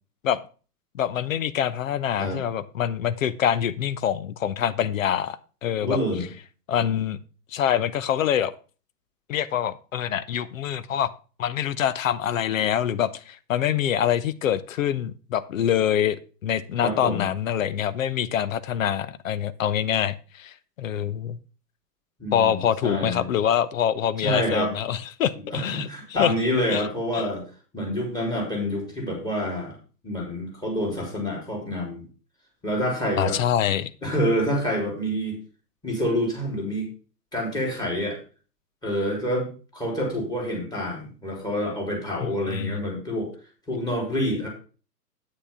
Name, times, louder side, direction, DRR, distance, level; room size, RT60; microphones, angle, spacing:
voice 1, 0.9-6.0 6.7-7.2 7.5-8.5 9.3-11.1 11.4-16.2 16.4-21.4 22.3-25.9 26.2-26.3 26.7-26.9 27.1-27.3 33.2-33.9 42.2-42.9, left 9 dB, 55° left, 15 dB, 0.9 m, -25 dB
voice 2, 5.8-6.3 16.8-17.3 22.2-23.3 24.2-24.7 25.5-27.4 27.7-29.8 30.0-32.1 32.6-33.4 34.0-35.4 35.8-36.9 37.3-38.2 38.8-43.3 43.7-44.5, equal, 10° left, 1 dB, 3.7 m, -27 dB
9.8 x 8.9 x 3.6 m, 0.36 s
figure-of-eight pair, 125°, 48 cm